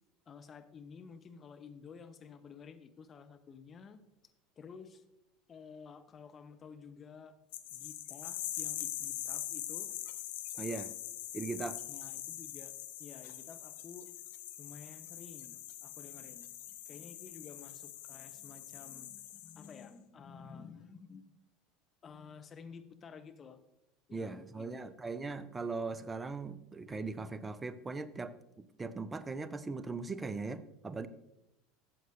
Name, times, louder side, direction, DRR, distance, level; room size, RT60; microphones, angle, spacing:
voice 1, 0.3-4.0 4.6-5.0 5.5-7.3 7.7-9.9 11.9-14.1 14.6-21.2 22.0-23.6 24.1-24.9, left 6 dB, 30° left, 8 dB, 0.8 m, -52 dB
sound 1, 7.5-19.8, left 13 dB, 65° left, 0.6 m, -43 dB
voice 2, 10.6-10.9 11.3-11.8 24.1-31.1, right 3 dB, 20° right, 14 dB, 0.6 m, -39 dB
13.0 x 7.7 x 2.5 m, 0.87 s
figure-of-eight pair, 75°, 0 cm